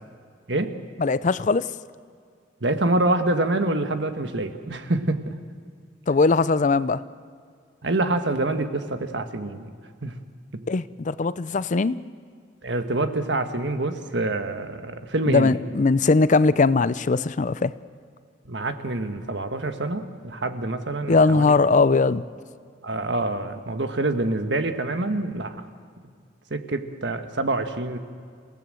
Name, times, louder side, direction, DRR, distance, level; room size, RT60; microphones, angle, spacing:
voice 1, 1.0-1.6 6.1-7.0 10.7-12.0 15.3-17.7 21.1-22.2, left 3 dB, 40° left, 16 dB, 0.5 m, -20 dB
voice 2, 2.6-5.3 7.8-9.7 10.0-10.1 10.5-10.6 12.6-15.5 18.5-21.6 22.8-25.5 26.5-28.0, right 2 dB, 65° right, 8 dB, 1.5 m, -26 dB
28.0 x 17.0 x 7.7 m, 2.1 s
head